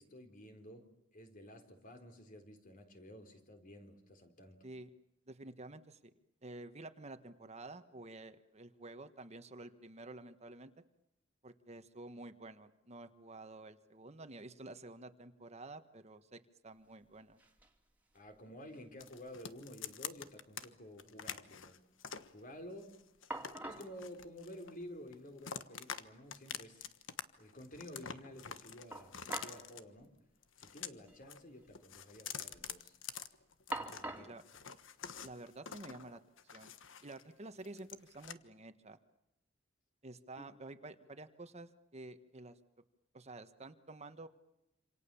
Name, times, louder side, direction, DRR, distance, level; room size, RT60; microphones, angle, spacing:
voice 1, 0.0-4.7 18.1-21.8 22.3-23.0 23.7-26.9 27.4-30.1 30.6-33.0 33.7-34.3 40.4-40.5, equal, 45° left, 6 dB, 4.2 m, -52 dB
voice 2, 5.3-6.1 6.4-10.7 11.4-17.4 34.0-34.4 35.2-36.2 36.5-36.7 37.0-39.0 40.0-42.6 43.1-44.3, right 2 dB, 35° right, 9 dB, 1.4 m, -50 dB
sound 1, 16.8-16.9 17.1-17.8 18.1-19.0 19.3-19.4 22.8-22.9 23.3-23.9 25.1-25.2 25.5-25.6 28.9-29.7 29.9-30.1 31.0-31.2 31.5-32.0 32.4-32.8 33.7-34.4, right 2 dB, 10° right, 3.0 m, -45 dB
sound 2, 19.0-20.7 21.0-22.3 22.8-24.8 25.1-26.0 26.3-27.2 27.5-29.8 30.4-31.4 31.7-34.0 34.4-37.2 37.6-38.3, left 8 dB, 75° left, 1.4 m, -46 dB
27.5 x 27.5 x 7.1 m, 0.85 s
head